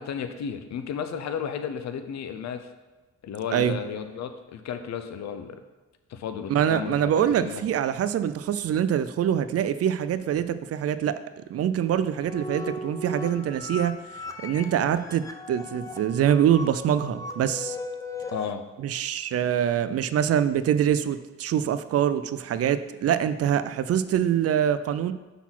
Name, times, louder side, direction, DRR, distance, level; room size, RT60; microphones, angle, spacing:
voice 1, 0.0-2.7 3.2-5.6 6.1-7.6 18.3-18.7, left 7 dB, 65° left, 8 dB, 0.7 m, -33 dB
voice 2, 6.5-14.0 14.4-17.8 18.8-25.1, right 9 dB, 55° right, 13 dB, 0.4 m, -24 dB
sound 1, 11.9-18.5, left 2 dB, 10° left, 0.7 m, -38 dB
5.8 x 4.1 x 6.0 m, 1.2 s
cardioid pair, 90°, 30 cm